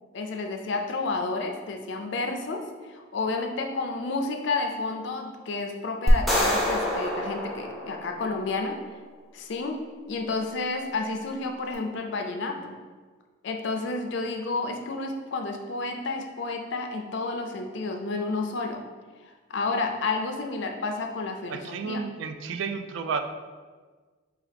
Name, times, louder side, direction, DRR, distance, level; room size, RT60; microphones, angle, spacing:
voice 1, 0.1-8.8 9.3-9.8 10.1-12.8 13.4-18.8 19.2-22.0, left 3 dB, 60° left, 3 dB, 0.4 m, -31 dB
sound 1, 6.1-8.5, equal, ahead, 0.4 m, -26 dB
voice 2, 21.5-23.2, right 5 dB, 65° right, 6 dB, 0.3 m, -32 dB
4.7 x 2.4 x 3.3 m, 1.4 s
head